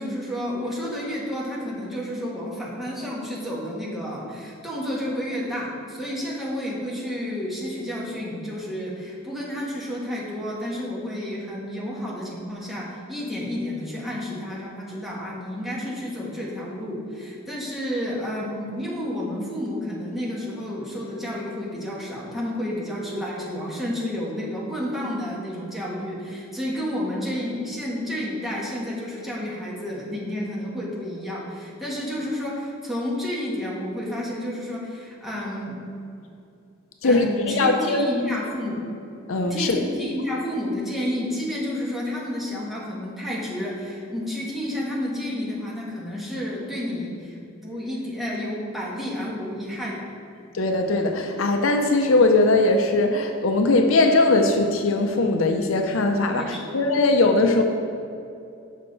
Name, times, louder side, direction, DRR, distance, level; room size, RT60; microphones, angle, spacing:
voice 1, 0.0-35.8 37.0-38.8 39.5-47.4 47.6-50.1 56.4-56.8, left 1 dB, ahead, -6 dB, 1.3 m, -30 dB
voice 2, 37.0-38.1 39.3-39.8 50.5-57.6, left 2 dB, 70° left, 5 dB, 0.5 m, -20 dB
7.3 x 5.5 x 4.0 m, 2.5 s
head